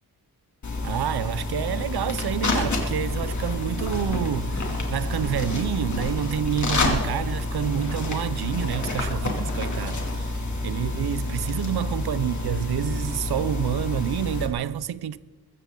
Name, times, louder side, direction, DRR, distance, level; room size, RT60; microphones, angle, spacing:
sound 1, 0.6-14.5, left 2 dB, 50° left, 2.6 m, -28 dB
voice 1, 0.8-15.2, right 10 dB, 75° right, 0.6 m, -28 dB
22.0 x 14.5 x 3.8 m
wide cardioid pair, 140°, 38 cm